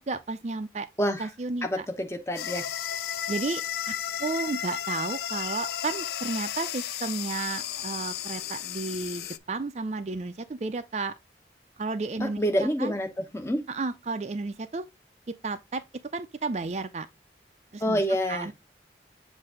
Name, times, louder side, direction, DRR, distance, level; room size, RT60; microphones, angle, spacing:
voice 1, 0.0-0.9 1.2-1.9 3.3-3.9 4.2-11.1 11.8-12.9 13.7-14.9 15.4-15.8 16.1-17.1 17.7-18.0 18.3-18.5, right 3 dB, 40° right, 0.4 m, -32 dB
voice 2, 1.6-2.7 12.2-13.1 13.3-13.6 17.8-18.5, equal, 15° left, 1.1 m, -27 dB
sound 1, 2.4-9.4, left 10 dB, 60° left, 0.4 m, -33 dB
7.7 x 2.6 x 5.0 m
head